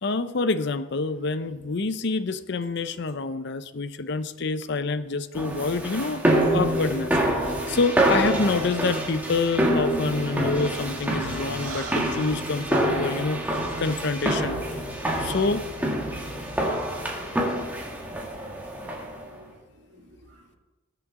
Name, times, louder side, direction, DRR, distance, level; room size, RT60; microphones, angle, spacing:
voice 1, 0.0-6.2 6.5-7.2 7.5-14.6 15.2-15.7, left 3 dB, 55° left, 13 dB, 0.6 m, -27 dB
sound 1, 5.3-19.2, right 1 dB, 10° right, 1.8 m, -26 dB
voice 2, 11.6-12.1 18.4-19.6 19.9-20.4, right 3 dB, 75° right, 1 dB, 2.0 m, -43 dB
20.5 x 7.6 x 3.7 m, 1.2 s
head